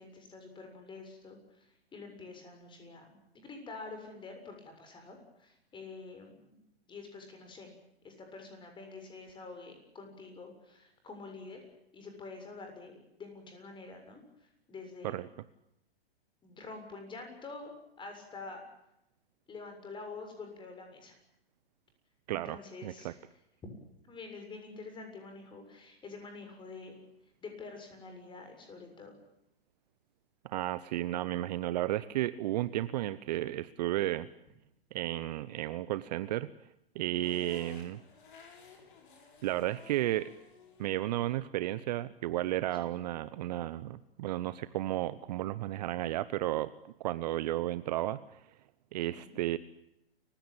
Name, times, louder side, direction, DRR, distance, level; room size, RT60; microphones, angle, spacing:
voice 1, 0.0-6.6 6.9-7.7 8.0-11.6 11.9-14.2 14.7-15.2 16.4-18.6 19.5-21.1 22.3-23.2 24.0-27.0 27.4-29.2 37.1-37.3 42.8-42.9 49.1-49.4, left 3 dB, 15° left, 5 dB, 7.1 m, -47 dB
voice 2, 22.3-23.1 30.4-34.3 34.9-36.5 36.9-38.0 39.4-40.3 40.8-46.7 47.0-48.2 48.9-49.6, right 14 dB, 40° right, 16 dB, 0.9 m, -33 dB
sound 1, 37.2-43.3, left 5 dB, 55° left, 7.4 m, -57 dB
29.5 x 16.5 x 8.9 m, 0.84 s
figure-of-eight pair, 120°, 31 cm